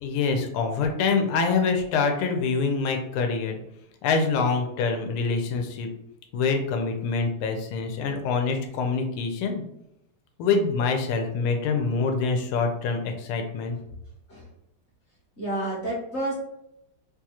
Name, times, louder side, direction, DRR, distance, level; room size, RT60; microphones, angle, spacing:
voice 1, 0.0-3.6 4.0-5.9 6.3-9.6 10.4-13.8, left 4 dB, 85° left, 4 dB, 1.6 m, -25 dB
voice 2, 15.4-16.3, right 1 dB, 50° left, -5 dB, 0.8 m, -29 dB
4.4 x 2.4 x 2.9 m, 0.83 s
omnidirectional pair, 2.4 m